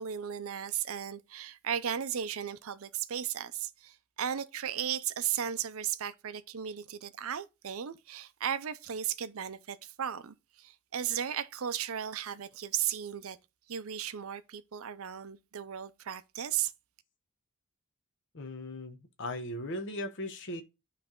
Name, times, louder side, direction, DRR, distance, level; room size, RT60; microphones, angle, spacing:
voice 1, 0.0-13.4 13.7-16.7, right 9 dB, 65° right, 0.5 m, -35 dB
voice 2, 18.3-20.6, left 1 dB, 55° left, 1.0 m, -38 dB
10.0 x 3.3 x 3.7 m
head